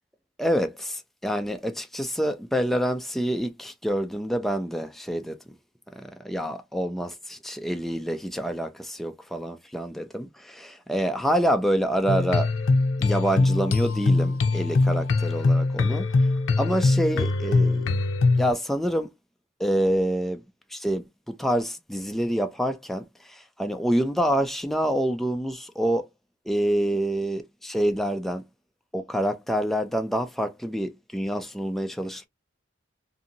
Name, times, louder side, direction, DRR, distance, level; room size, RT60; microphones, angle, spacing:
voice 1, 0.4-5.4 5.9-12.5 13.0-16.1 16.6-17.9 18.4-19.1 19.6-20.4 20.7-23.0 23.3-26.1 26.5-28.4 28.9-32.3, equal, ahead, 0.3 m, -27 dB
sound 1, 12.1-18.5, left 3 dB, 85° left, 0.6 m, -22 dB
2.6 x 2.6 x 2.6 m
head